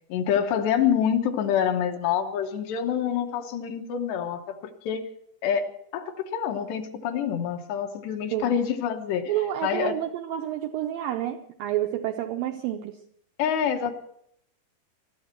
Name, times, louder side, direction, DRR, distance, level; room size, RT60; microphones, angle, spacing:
voice 1, 0.1-4.6 4.8-5.1 5.4-5.7 5.9-9.4 9.6-10.0 13.4-13.9, left 8 dB, 75° left, 4 dB, 3.2 m, -26 dB
voice 2, 9.3-13.0, right 12 dB, 90° right, 5 dB, 2.0 m, -29 dB
20.5 x 14.0 x 4.5 m, 0.70 s
omnidirectional pair, 5.0 m